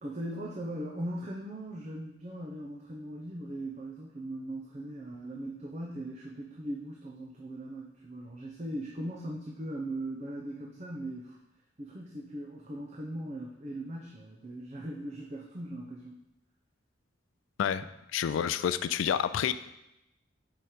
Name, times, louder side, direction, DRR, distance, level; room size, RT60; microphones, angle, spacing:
voice 1, 0.0-11.4 11.8-16.2, right 1 dB, 35° right, -2 dB, 0.6 m, -39 dB
voice 2, 18.1-19.5, left 8 dB, 80° left, 12 dB, 0.3 m, -28 dB
5.1 x 4.8 x 4.3 m, 0.89 s
head